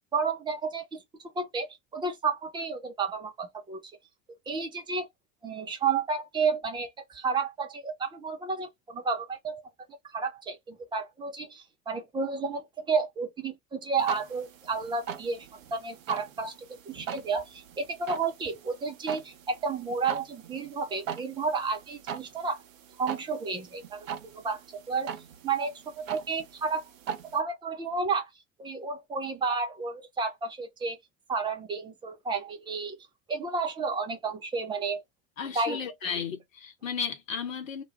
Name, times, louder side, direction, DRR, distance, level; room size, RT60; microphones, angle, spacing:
voice 1, 0.1-1.0 1.4-3.8 4.5-5.1 5.4-9.6 10.1-16.6 16.9-22.6 23.0-24.1 24.3-25.2 25.4-26.8 27.3-28.3 28.6-31.0 31.3-33.0 33.3-35.0 35.5-36.1, right 4 dB, 10° right, 0.4 m, -31 dB
sound 1, 14.0-27.4, right 8 dB, 70° right, 0.6 m, -42 dB
voice 2, 35.4-37.8, left 6 dB, 70° left, 0.9 m, -34 dB
2.3 x 2.2 x 3.0 m
figure-of-eight pair, 75°, 42 cm